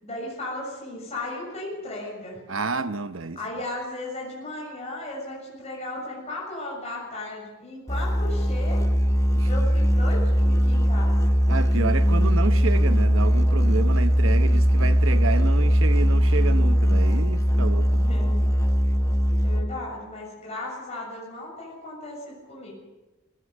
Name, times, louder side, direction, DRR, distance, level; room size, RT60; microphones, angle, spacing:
voice 1, 0.0-2.4 3.4-8.9 9.5-11.1 18.0-18.4 19.4-22.8, left 2 dB, 35° left, 7.0 m, -35 dB
voice 2, 2.5-3.4 9.3-9.5 11.5-18.1, right 3 dB, 75° right, 1.0 m, -29 dB
Musical instrument, 7.9-19.9, equal, 15° left, 1.1 m, -20 dB
20.0 x 18.0 x 8.0 m
head